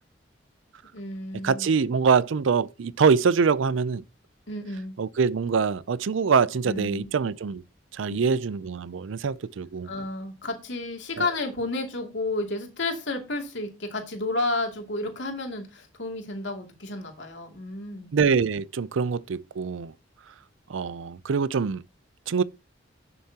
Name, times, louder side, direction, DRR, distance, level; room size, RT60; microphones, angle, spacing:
voice 1, 0.9-1.7 4.5-4.9 6.6-7.1 9.8-18.1, left 2 dB, 70° left, 2.6 m, -31 dB
voice 2, 1.4-4.0 5.0-7.6 7.9-9.9 11.2-11.3 18.1-19.9 20.7-21.8 22.3-22.4, right 5 dB, 80° right, 0.5 m, -24 dB
11.0 x 7.0 x 2.8 m
head